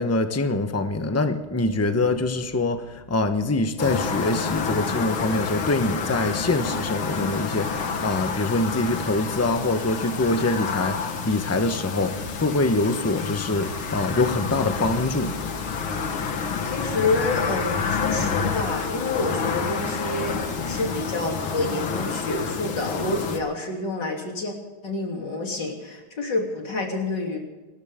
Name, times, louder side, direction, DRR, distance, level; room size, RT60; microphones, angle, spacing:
voice 1, 0.0-15.4, left 2 dB, 15° left, 8 dB, 0.5 m, -24 dB
sound 1, 3.8-23.4, left 5 dB, 75° left, 2.4 m, -29 dB
voice 2, 16.6-24.5 24.8-27.4, left 3 dB, 55° left, 1 dB, 3.7 m, -28 dB
27.5 x 14.0 x 3.7 m, 1.2 s
omnidirectional pair, 2.2 m